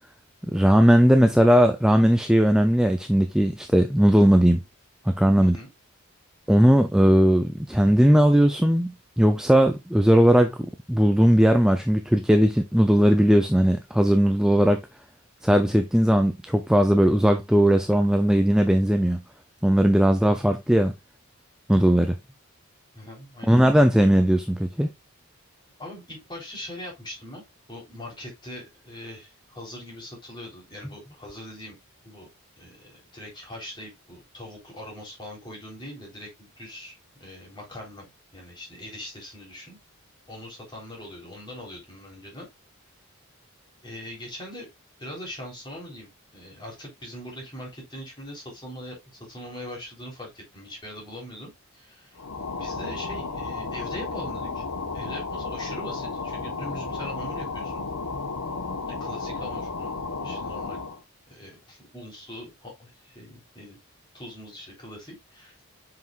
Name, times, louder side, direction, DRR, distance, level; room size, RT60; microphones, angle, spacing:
voice 1, 0.5-4.6 5.1-5.6 6.5-10.6 10.9-14.8 15.4-19.2 19.6-20.9 21.7-22.2 23.5-24.9, equal, 5° right, 0.4 m, -18 dB
voice 2, 23.0-23.6 25.8-27.4 27.7-31.8 32.0-32.3 32.6-38.0 38.3-39.8 40.3-42.5 43.8-44.7 45.0-52.2 52.6-54.6 54.9-57.8 59.0-59.9 60.2-60.8 61.3-63.8 64.1-65.6, left 1 dB, 20° left, 3.7 m, -41 dB
sound 1, 52.2-61.0, left 4 dB, 85° left, 1.2 m, -33 dB
7.6 x 5.8 x 2.4 m
head